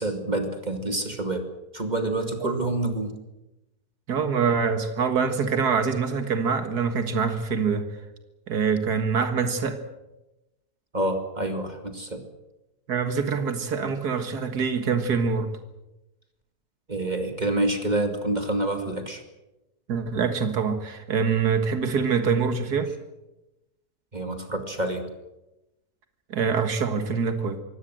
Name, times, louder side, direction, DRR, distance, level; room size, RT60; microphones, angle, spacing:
voice 1, 0.0-1.5 1.7-3.1 10.9-12.2 16.9-19.2 24.1-25.1, right 2 dB, 30° right, 5 dB, 2.4 m, -27 dB
voice 2, 4.1-7.9 8.5-9.8 12.9-15.5 19.9-22.9 26.3-27.6, right 5 dB, 85° right, 8 dB, 2.2 m, -25 dB
24.0 x 17.0 x 7.8 m, 0.97 s
omnidirectional pair, 1.6 m